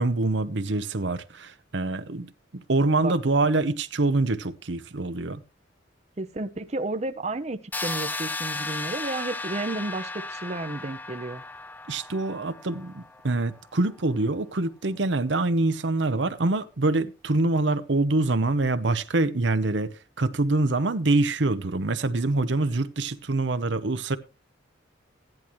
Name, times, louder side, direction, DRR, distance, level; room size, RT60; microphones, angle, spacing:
voice 1, 0.0-5.4 11.9-24.2, right 2 dB, 70° right, 0.8 m, -25 dB
voice 2, 6.2-11.4, right 2 dB, 35° right, 0.8 m, -32 dB
sound 1, 7.7-13.5, left 2 dB, 10° left, 0.6 m, -35 dB
15.5 x 10.5 x 3.1 m
head